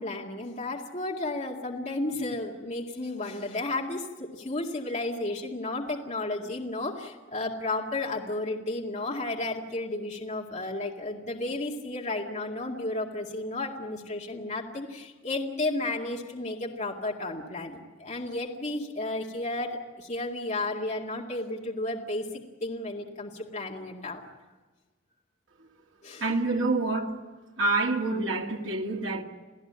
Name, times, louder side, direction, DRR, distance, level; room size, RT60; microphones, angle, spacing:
voice 1, 0.0-24.2 26.0-26.3, left 2 dB, 35° left, 2.1 m, -33 dB
voice 2, 26.2-27.2 27.6-29.2, right 2 dB, 75° right, 2.3 m, -27 dB
28.5 x 16.5 x 8.8 m
head